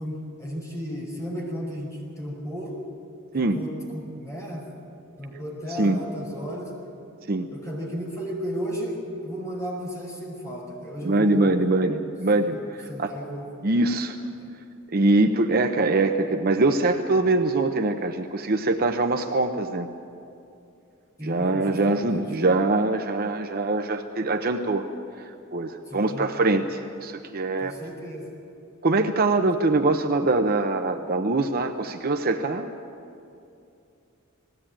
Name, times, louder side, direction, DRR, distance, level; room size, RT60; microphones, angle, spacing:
voice 1, 0.0-2.8 3.3-4.6 5.2-6.7 7.5-11.7 12.5-13.5 14.3-14.5 21.2-22.2 25.9-26.3 27.6-28.3, equal, 15° left, -3 dB, 4.9 m, -34 dB
voice 2, 11.0-13.1 13.6-14.2 14.9-19.9 21.2-24.9 25.5-27.8 28.8-32.7, right 2 dB, 45° right, 5 dB, 0.8 m, -23 dB
20.0 x 15.5 x 8.8 m, 2.6 s
head